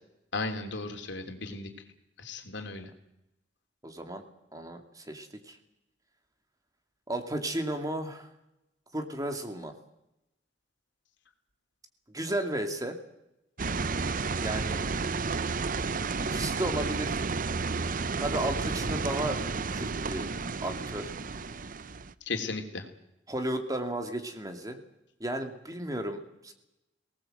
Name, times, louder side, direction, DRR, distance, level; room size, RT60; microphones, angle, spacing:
voice 1, 0.3-1.7 2.2-2.9 22.3-22.9, left 3 dB, 75° left, 5 dB, 3.2 m, -35 dB
voice 2, 3.8-4.2 4.5-5.6 7.1-8.3 8.9-9.7 12.1-13.0 14.4-14.8 16.2-17.2 18.2-19.4 19.7-20.3 20.6-21.1 23.3-24.8 25.2-26.5, right 1 dB, 20° right, 5 dB, 2.5 m, -34 dB
sound 1, 13.6-22.1, right 4 dB, 50° right, 0.8 m, -31 dB
24.5 x 19.0 x 8.0 m, 0.87 s
head